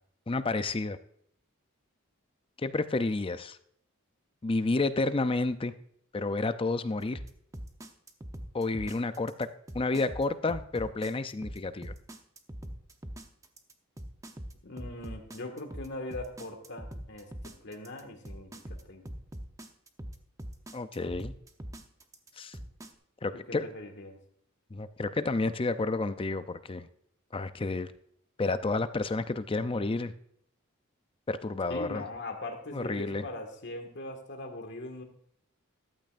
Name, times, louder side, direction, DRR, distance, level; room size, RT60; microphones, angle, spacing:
voice 1, 0.3-1.0 2.6-3.6 4.4-5.7 6.1-7.2 8.5-9.5 9.7-11.9 20.7-21.3 22.4-22.6 23.2-23.7 24.7-26.9 27.3-27.9 28.4-30.1 31.3-32.1 32.7-33.3, left 3 dB, 25° left, 12 dB, 0.5 m, -30 dB
sound 1, 7.1-22.9, right 1 dB, 15° right, 0.7 m, -42 dB
voice 2, 14.6-17.3 17.6-18.5 18.9-19.0 23.6-24.1 31.7-35.0, left 2 dB, 55° left, 4 dB, 1.8 m, -40 dB
14.0 x 12.0 x 2.5 m, 0.68 s
head